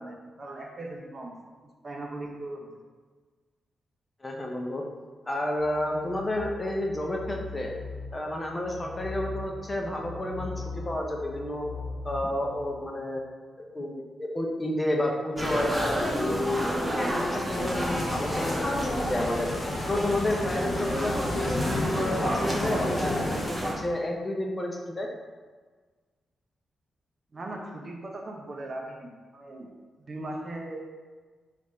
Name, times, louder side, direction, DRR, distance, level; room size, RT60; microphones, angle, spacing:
voice 1, 0.0-1.4 1.8-2.8 27.3-29.7 30.0-30.9, right 1 dB, 45° right, 1 dB, 0.5 m, -39 dB
voice 2, 4.2-4.8 5.3-7.7 8.1-11.7 12.0-13.2 13.7-19.5 19.9-25.1, left 1 dB, 20° left, 0 dB, 0.6 m, -30 dB
sound 1, 5.6-12.8, left 3 dB, 75° right, 0.9 m, -40 dB
sound 2, 15.4-23.7, equal, 10° right, 0.7 m, -30 dB
sound 3, 17.5-23.4, left 3 dB, 65° left, 0.4 m, -34 dB
3.4 x 2.5 x 4.2 m, 1.4 s
cardioid pair, 85°, 0 cm